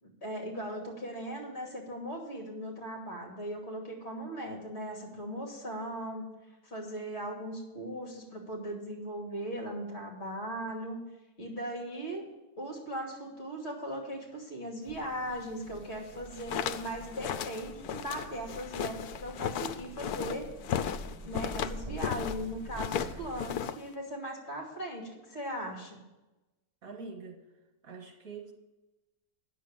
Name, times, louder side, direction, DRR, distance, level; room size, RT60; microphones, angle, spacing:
voice 1, 0.0-6.3 6.6-11.0 11.4-12.3 12.6-20.5 21.2-26.0, right 1 dB, 45° left, -1 dB, 2.8 m, -38 dB
sound 1, 14.8-23.6, equal, 25° right, 4.6 m, -47 dB
sound 2, 16.2-22.4 22.7-23.9, left 9 dB, 85° left, 1.1 m, -35 dB
voice 2, 26.8-27.4 27.8-28.5, right 4 dB, 65° right, 3 dB, 1.8 m, -44 dB
9.5 x 6.7 x 8.9 m, 1.1 s
omnidirectional pair, 1.6 m